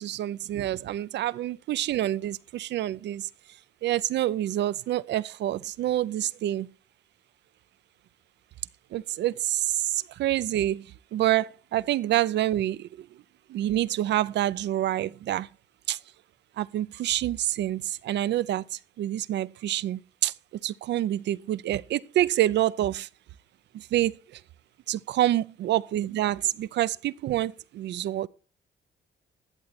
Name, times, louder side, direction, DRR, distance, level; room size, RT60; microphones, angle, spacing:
voice 1, 0.0-3.3 3.8-6.7 8.9-10.9 11.1-13.1 13.5-15.5 15.9-16.0 16.6-20.3 20.6-23.1 23.7-24.4 24.9-28.3, right 13 dB, 70° right, 0.5 m, -27 dB
11.5 x 7.9 x 4.1 m
cardioid pair, 75°, 19 cm